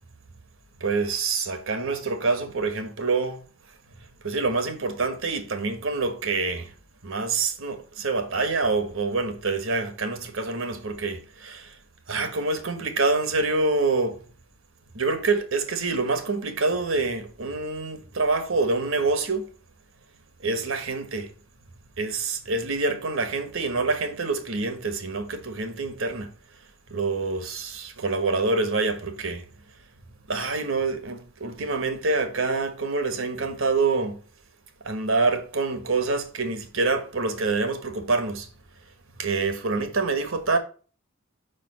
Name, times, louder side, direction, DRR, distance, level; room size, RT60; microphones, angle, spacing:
voice 1, 0.8-3.4 4.2-6.7 7.0-11.8 12.1-14.2 14.9-19.5 20.4-21.3 22.0-26.3 26.9-29.5 30.3-34.2 34.8-38.5 39.2-40.6, right 3 dB, 65° right, 1.3 m, -26 dB
5.3 x 5.1 x 6.3 m
head